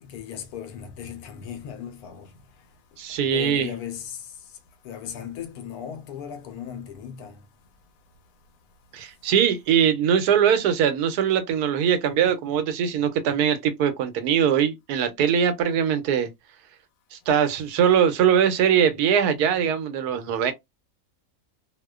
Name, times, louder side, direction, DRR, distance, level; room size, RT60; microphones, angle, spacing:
voice 1, 0.0-2.3 3.3-4.2 4.8-7.4, left 8 dB, 80° left, 1.1 m, -36 dB
voice 2, 3.0-3.7 8.9-16.3 17.1-20.5, right 8 dB, 90° right, 1.1 m, -21 dB
2.7 x 2.1 x 2.2 m
omnidirectional pair, 1.6 m